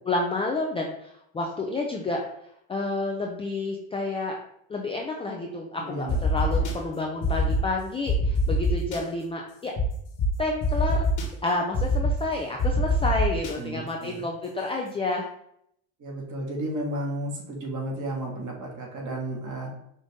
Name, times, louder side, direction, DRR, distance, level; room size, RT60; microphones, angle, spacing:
voice 1, 0.1-2.2 2.7-4.4 4.7-9.7 10.4-11.0 11.4-15.3, left 2 dB, 15° left, -1 dB, 0.3 m, -29 dB
voice 2, 5.8-6.2 6.5-6.6 13.6-14.2 16.0-19.7, right 1 dB, 40° right, -1 dB, 1.6 m, -33 dB
sound 1, 6.1-6.7 7.2-7.6 8.1-9.0 9.8-9.9 10.2-10.3 10.6-11.3 11.7-12.1 12.6-13.5, left 2 dB, 45° left, 1.2 m, -23 dB
5.2 x 2.6 x 3.5 m, 0.74 s
supercardioid pair, 115°, 44 cm